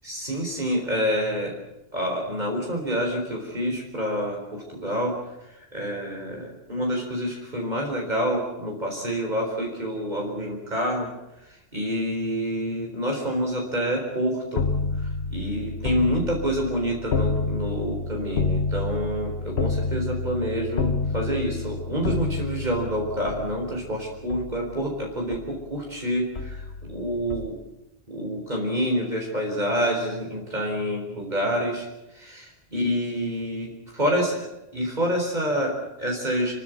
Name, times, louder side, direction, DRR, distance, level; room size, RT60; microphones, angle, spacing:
voice 1, 0.0-1.5 1.9-5.1 5.5-11.1 11.5-14.7 15.0-27.5 28.1-31.9 32.1-34.5 34.7-36.5, equal, 45° right, -1 dB, 4.4 m, -27 dB
sound 1, 14.6-25.9 26.4-27.5, left 3 dB, 85° left, 1.4 m, -29 dB
28.5 x 13.0 x 9.3 m, 0.95 s
omnidirectional pair, 1.1 m